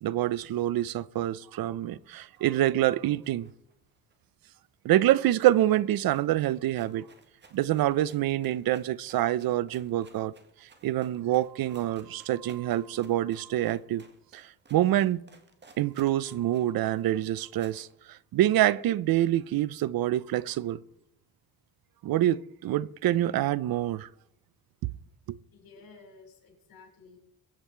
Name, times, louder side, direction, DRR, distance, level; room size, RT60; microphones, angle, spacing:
voice 1, 0.0-3.5 4.8-7.1 7.5-10.3 10.6-14.0 14.3-15.2 15.8-20.8 22.0-24.1 25.3-25.4, right 13 dB, 75° right, 0.6 m, -26 dB
Walking on Gravel, 2.0-4.7 4.9-5.0 5.2-17.9, right 3 dB, 30° right, 1.8 m, -58 dB
voice 2, 25.5-27.2, left 4 dB, 70° left, 4.9 m, -53 dB
22.5 x 8.6 x 4.5 m
cardioid pair, 150°, 36 cm